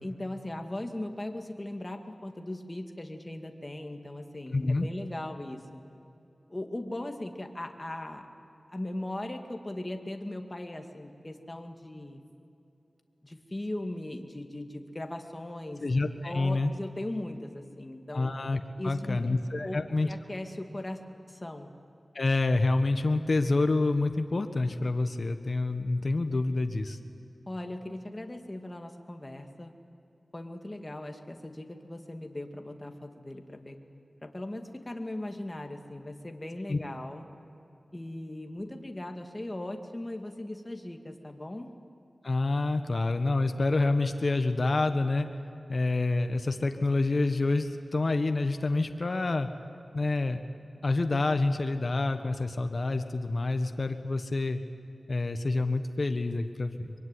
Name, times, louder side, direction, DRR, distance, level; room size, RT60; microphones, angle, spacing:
voice 1, 0.0-5.8 6.5-8.3 8.7-12.2 13.2-15.8 16.2-18.3 18.8-21.0 21.3-21.7 27.5-29.7 30.3-37.3 37.9-41.7, left 1 dB, 30° left, 4 dB, 2.3 m, -39 dB
voice 2, 4.5-4.9 15.8-16.7 18.1-20.1 22.1-27.0 36.7-36.8 42.2-45.3 45.7-49.5 49.9-50.4 50.8-54.6 55.1-56.9, left 2 dB, 60° left, 7 dB, 1.3 m, -27 dB
24.5 x 23.0 x 9.9 m, 2.8 s
cardioid pair, 45°, 0 cm